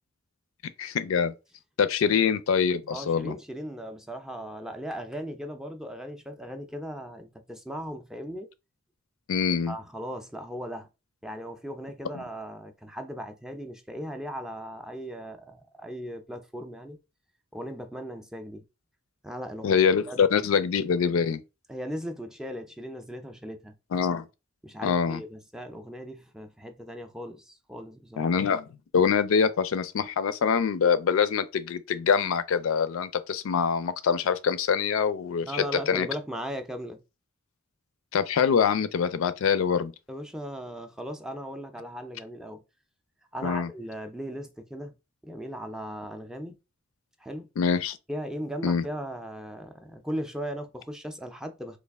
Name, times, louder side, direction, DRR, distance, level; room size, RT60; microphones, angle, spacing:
voice 1, 0.8-1.3 1.8-3.3 9.3-9.7 19.6-21.4 23.9-24.3 24.8-25.2 28.2-28.6 28.9-36.1 38.1-39.9 43.4-43.7 47.6-48.0 48.6-48.8, left 6 dB, 85° left, 0.4 m, -24 dB
voice 2, 2.9-8.5 9.7-10.9 11.2-17.0 17.5-18.6 19.2-19.8 20.1-20.2 21.7-23.8 24.6-28.3 35.4-37.0 40.1-42.6 43.3-44.9 45.2-46.6 47.2-47.5 48.1-51.8, equal, 5° right, 0.4 m, -37 dB
3.2 x 2.4 x 3.4 m
head